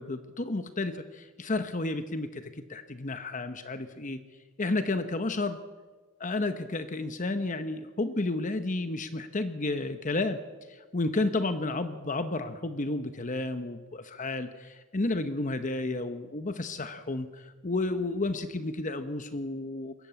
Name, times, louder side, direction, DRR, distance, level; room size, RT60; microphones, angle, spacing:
voice 1, 0.0-4.2 4.6-5.6 6.2-10.4 10.7-19.9, left 2 dB, 35° left, 9 dB, 0.9 m, -31 dB
22.0 x 13.5 x 8.6 m, 1.3 s
head